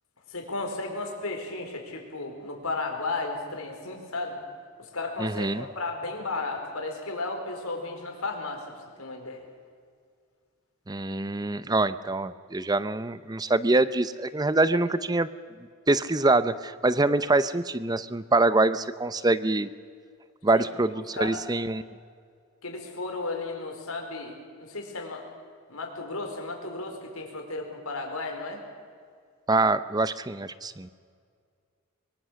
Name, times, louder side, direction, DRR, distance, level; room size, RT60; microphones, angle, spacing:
voice 1, 0.3-4.4 4.8-8.6 9.0-9.4 14.7-14.8 20.5-20.7 21.1-21.4 22.6-25.2 25.7-28.6, left 3 dB, 80° left, 3 dB, 4.5 m, -34 dB
voice 2, 5.2-5.7 10.9-15.3 15.9-19.7 20.4-21.8 29.5-30.9, right 2 dB, 20° right, 14 dB, 0.7 m, -25 dB
23.5 x 23.0 x 6.4 m, 2.1 s
head